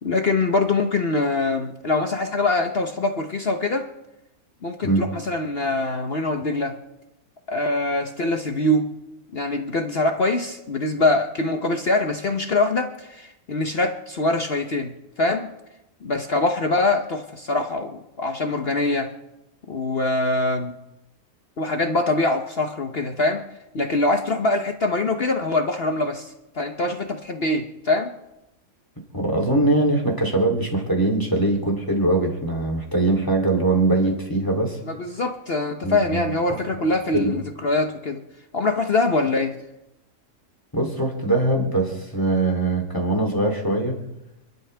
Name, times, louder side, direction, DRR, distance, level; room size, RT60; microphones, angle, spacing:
voice 1, 0.0-3.9 4.6-6.8 7.5-8.9 9.3-15.5 16.0-19.1 19.7-20.7 21.6-23.4 23.7-28.1 34.8-38.2 38.5-39.6, left 2 dB, 45° left, 5 dB, 1.1 m, -23 dB
voice 2, 29.1-34.8 35.8-36.3 37.1-37.4 40.7-44.0, right 2 dB, 15° left, 1 dB, 3.0 m, -22 dB
29.0 x 12.0 x 3.4 m, 0.91 s
omnidirectional pair, 1.6 m